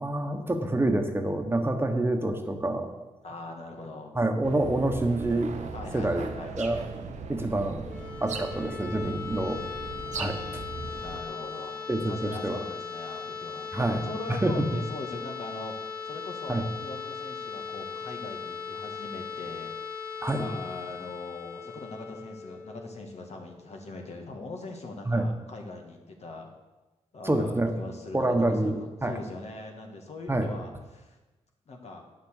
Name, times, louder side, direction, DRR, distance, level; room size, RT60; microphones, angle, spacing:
voice 1, 0.0-2.9 4.1-5.5 5.9-6.3 6.6-6.8 7.3-9.6 10.2-10.6 11.9-12.6 13.7-14.0 14.4-14.7 16.5-16.6 20.2-20.5 25.1-25.3 27.2-27.7 28.1-29.1 30.3-30.5, right 1 dB, 20° right, 5 dB, 1.4 m, -27 dB
voice 2, 3.2-4.1 5.7-6.5 10.8-15.7 16.0-19.7 20.4-26.5 27.1-31.2 31.7-32.0, left 2 dB, 60° left, 2 dB, 1.9 m, -41 dB
sound 1, 4.4-11.2, right 4 dB, 70° right, 1.0 m, -39 dB
sound 2, 7.8-23.6, left 5 dB, 10° left, 1.6 m, -39 dB
9.6 x 6.9 x 6.7 m, 1.1 s
cardioid pair, 65°, 12 cm